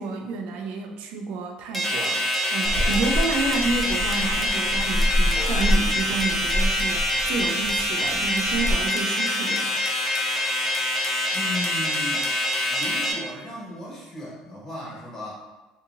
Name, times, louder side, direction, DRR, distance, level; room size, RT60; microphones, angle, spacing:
voice 1, 0.0-2.2 2.5-9.8, right 3 dB, 75° right, 3 dB, 0.3 m, -30 dB
sound 1, 1.7-13.1, left 1 dB, 5° left, 0.6 m, -25 dB
Purr / Meow, 2.6-8.7, equal, 30° right, 0.8 m, -27 dB
voice 2, 11.3-12.3 12.7-15.3, left 1 dB, 25° left, -7 dB, 1.3 m, -36 dB
2.8 x 2.7 x 2.5 m, 1.1 s
cardioid pair, 135°, 2 cm